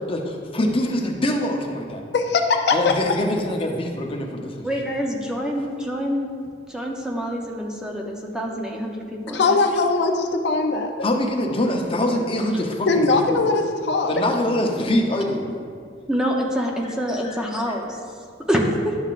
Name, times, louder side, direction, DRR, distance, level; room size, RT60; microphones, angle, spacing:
voice 1, 0.1-2.0 2.7-4.7 11.0-13.4 14.1-15.5 16.8-16.9 17.2-17.4 17.7-17.8, left 1 dB, 30° left, 1 dB, 0.7 m, -24 dB
voice 2, 2.1-3.1 9.3-10.9 12.9-14.1, left 3 dB, 65° left, 4 dB, 0.5 m, -20 dB
voice 3, 4.6-6.3 6.7-9.6 14.5-14.6 16.1-18.0 18.5-18.9, equal, 5° right, -1 dB, 0.6 m, -26 dB
11.0 x 5.6 x 2.5 m, 2.2 s
head